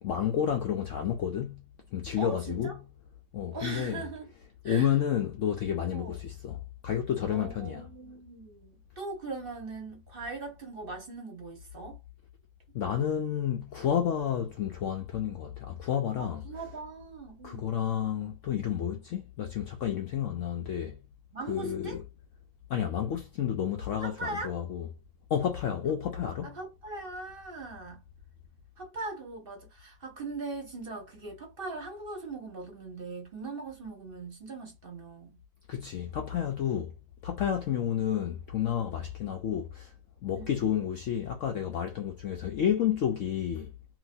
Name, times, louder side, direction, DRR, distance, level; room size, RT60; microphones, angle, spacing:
voice 1, 0.0-1.6 1.9-2.8 3.3-4.0 4.6-7.9 12.7-16.4 17.4-21.0 21.5-22.0 22.7-24.9 25.3-26.5 35.7-36.9 37.2-39.9 40.2-43.7, left 9 dB, 90° left, 0.6 m, -30 dB
voice 2, 2.2-2.8 3.5-4.3 4.6-4.9 5.9-6.2 7.3-12.0 16.2-17.7 21.3-22.0 24.0-24.5 26.4-28.0 28.8-35.4 40.3-40.5, right 3 dB, 40° right, 0.9 m, -40 dB
2.9 x 2.8 x 2.6 m
omnidirectional pair, 2.0 m